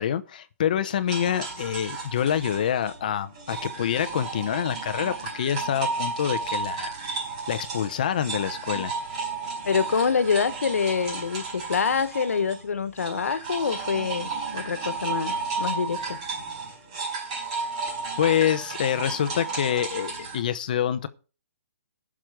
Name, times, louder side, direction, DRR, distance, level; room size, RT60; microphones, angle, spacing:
voice 1, 0.0-7.2 7.5-8.9 18.2-21.1, left 9 dB, 35° left, 0.8 m, -26 dB
sound 1, 1.1-12.6 13.0-20.4, right 4 dB, 30° right, 4.8 m, -33 dB
voice 2, 9.6-16.2, left 6 dB, 85° left, 1.3 m, -26 dB
15.0 x 6.2 x 5.0 m
hypercardioid pair, 175°, 8 cm